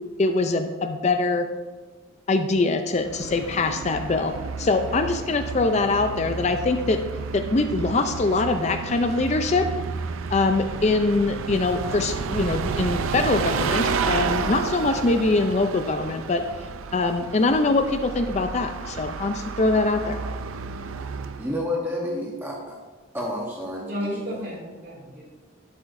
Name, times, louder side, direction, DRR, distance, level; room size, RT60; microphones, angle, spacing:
voice 1, 0.2-1.5 2.3-4.3 4.6-7.0 7.3-9.7 10.3-16.4 16.9-20.2, left 3 dB, 35° left, 7 dB, 0.4 m, -23 dB
Bus, 3.0-21.6, right 5 dB, 80° right, 0.4 m, -31 dB
voice 2, 21.4-22.8 23.1-24.4, left 1 dB, 10° right, -3 dB, 0.9 m, -30 dB
voice 3, 23.8-25.4, equal, 50° right, -3 dB, 2.5 m, -33 dB
11.5 x 7.8 x 2.6 m, 1.3 s
head